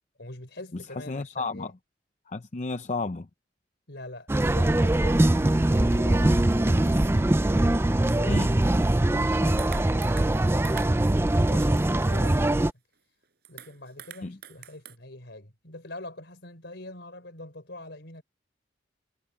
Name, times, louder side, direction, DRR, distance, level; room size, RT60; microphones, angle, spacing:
voice 1, 0.2-1.7 3.9-7.1 7.5-8.5 8.9-12.7 13.5-18.2, left 1 dB, 65° left, 5.0 m, -44 dB
voice 2, 0.7-1.7 2.3-3.3 8.3-8.6 14.2-14.4, left 3 dB, 40° left, 0.6 m, -32 dB
sound 1, 4.3-12.7, right 1 dB, 15° right, 0.4 m, -22 dB
sound 2, 9.6-10.4 10.6-11.2 11.6-12.5 12.9-13.0 13.2-15.0, right 9 dB, 55° right, 7.4 m, -45 dB
head